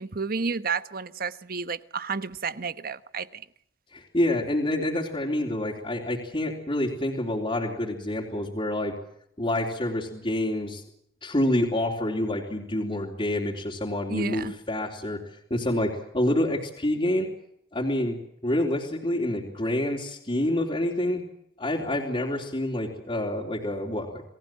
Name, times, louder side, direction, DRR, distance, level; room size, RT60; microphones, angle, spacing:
voice 1, 0.0-3.4 14.1-14.5, right 4 dB, 55° right, 1.2 m, -31 dB
voice 2, 3.9-8.9 9.4-10.8 11.2-15.2 15.5-17.3 17.7-18.2 18.4-21.2 21.6-24.2, left 1 dB, 30° left, 3.6 m, -27 dB
29.0 x 19.5 x 7.5 m
head